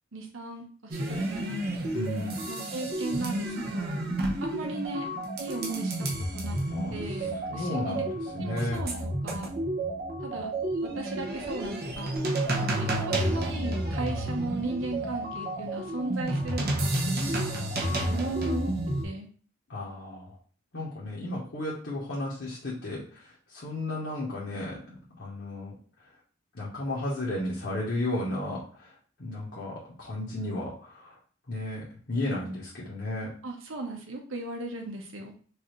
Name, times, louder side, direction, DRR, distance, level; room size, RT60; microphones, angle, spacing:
voice 1, 0.1-1.6 2.5-4.1 4.4-5.1 5.4-5.9 6.3-6.6 6.9-8.0 8.4-9.5 10.2-10.5 10.8-12.1 12.6-17.5 18.1-18.7 19.0-19.3 33.4-35.3, right 2 dB, 85° right, 2 dB, 1.0 m, -36 dB
sound 1, 0.9-19.1, right 1 dB, 50° right, 0.9 m, -31 dB
voice 2, 1.9-2.4 6.7-7.0 7.5-8.1 8.3-8.8 19.7-20.3 20.7-25.7 26.5-28.9 29.2-31.2 31.5-33.3, left 1 dB, 60° left, -6 dB, 1.1 m, -34 dB
4.7 x 2.6 x 3.1 m, 0.42 s
head